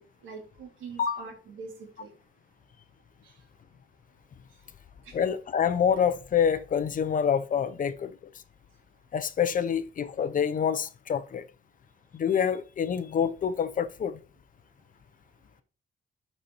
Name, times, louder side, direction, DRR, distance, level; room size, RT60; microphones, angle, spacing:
voice 1, 0.0-2.1 3.2-3.3 5.0-5.2, right 5 dB, 80° right, 2.1 m, -44 dB
voice 2, 5.1-8.1 9.1-11.4 12.1-14.2, left 7 dB, 45° left, 0.6 m, -27 dB
11.5 x 4.2 x 2.9 m
cardioid pair, 90°, 20 cm